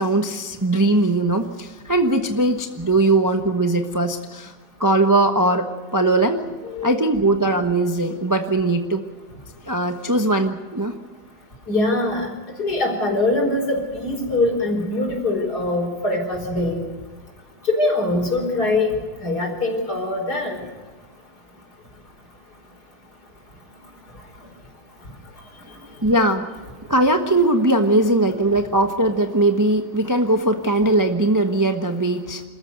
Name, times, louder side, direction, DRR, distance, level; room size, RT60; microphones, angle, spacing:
voice 1, 0.0-4.5 4.8-6.4 6.8-9.0 9.7-10.9 26.0-26.5 26.9-32.4, right 2 dB, 15° right, 5 dB, 0.8 m, -20 dB
voice 2, 6.6-7.0 11.7-12.3 12.6-16.8 17.7-18.9 19.2-20.6, left 2 dB, 55° left, 2 dB, 5.3 m, -22 dB
27.5 x 14.0 x 8.1 m, 1.4 s
omnidirectional pair, 2.0 m